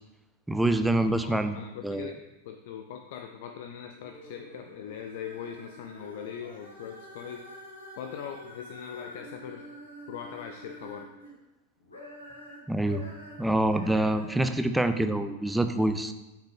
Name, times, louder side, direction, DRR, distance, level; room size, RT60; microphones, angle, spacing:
voice 1, 0.5-1.6 1.8-2.1 12.7-13.0 13.4-16.1, right 1 dB, 5° right, 8 dB, 0.4 m, -26 dB
voice 2, 1.2-7.4 8.0-9.6 10.1-11.1, left 8 dB, 50° left, 6 dB, 0.5 m, -41 dB
sound 1, 3.9-11.3 11.8-14.3, equal, 75° left, 1.5 m, -47 dB
6.7 x 5.7 x 3.5 m, 1.1 s
figure-of-eight pair, 90°, 0 cm